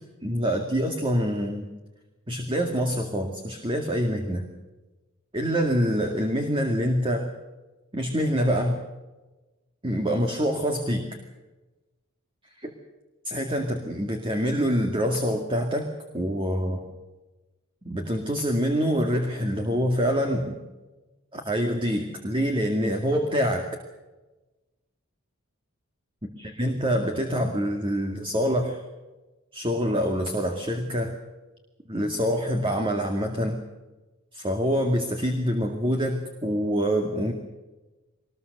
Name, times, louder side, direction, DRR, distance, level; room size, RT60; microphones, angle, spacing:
voice 1, 0.2-1.7 2.3-4.4 5.3-7.3 7.9-8.8 9.8-11.1 12.6-12.7 13.2-15.9 16.1-16.8 17.8-20.6 21.3-23.7 26.4-28.8 29.5-31.1 31.9-33.6 34.3-37.3, equal, 25° right, 4 dB, 2.2 m, -25 dB
24.0 x 20.5 x 6.7 m, 1.1 s
head